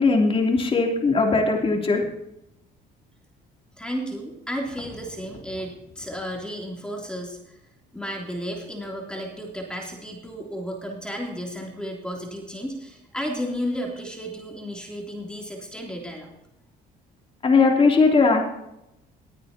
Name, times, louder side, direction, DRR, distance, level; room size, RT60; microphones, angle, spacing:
voice 1, 0.0-2.0 17.4-18.5, left 4 dB, 35° left, 1 dB, 3.2 m, -19 dB
voice 2, 3.8-7.6 7.9-16.3, equal, 5° left, 0 dB, 3.2 m, -33 dB
19.5 x 9.4 x 2.9 m, 0.84 s
cardioid pair, 110°, 17 cm